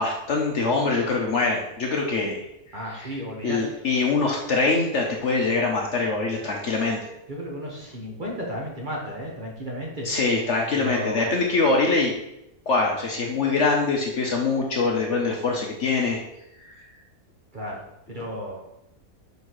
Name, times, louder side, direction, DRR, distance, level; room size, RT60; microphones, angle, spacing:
voice 1, 0.0-2.4 3.0-3.1 3.4-7.0 10.0-12.1 12.7-16.2, left 3 dB, 55° left, 0 dB, 1.0 m, -23 dB
voice 2, 2.7-3.8 7.3-10.1 10.7-11.3 17.5-17.8 18.1-18.6, equal, 30° right, -3 dB, 1.4 m, -33 dB
5.7 x 4.0 x 4.7 m, 0.84 s
omnidirectional pair, 1.7 m